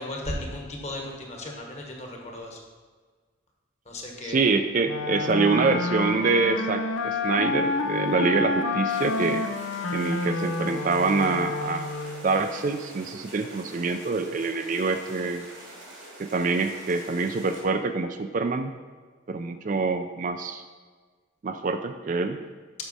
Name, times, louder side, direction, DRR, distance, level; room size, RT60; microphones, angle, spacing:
voice 1, 0.0-2.6 3.9-4.5, left 1 dB, 35° left, 1 dB, 1.2 m, -35 dB
voice 2, 4.2-9.4 9.9-11.9 12.2-15.5 16.2-18.7 19.3-20.6 21.4-22.4, right 4 dB, 40° right, 8 dB, 0.4 m, -25 dB
Wind instrument woodwind instrument, 4.8-12.3, left 3 dB, 85° left, 0.6 m, -29 dB
sound 1, 8.9-17.6, right 1 dB, 85° right, 2.5 m, -45 dB
7.9 x 6.2 x 4.1 m, 1.5 s
head